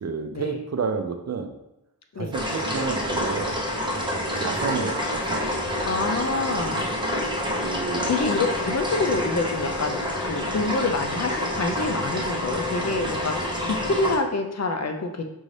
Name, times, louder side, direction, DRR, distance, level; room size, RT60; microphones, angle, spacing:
voice 1, 0.0-1.5 2.2-3.6 4.4-5.5 7.6-8.2, right 5 dB, 45° right, 5 dB, 0.4 m, -30 dB
sound 1, 2.3-14.2, left 1 dB, 15° right, 0.7 m, -28 dB
voice 2, 5.8-6.9 7.9-15.2, left 3 dB, 45° left, 4 dB, 0.5 m, -27 dB
5.4 x 2.6 x 3.2 m, 0.87 s
wide cardioid pair, 105°, 38 cm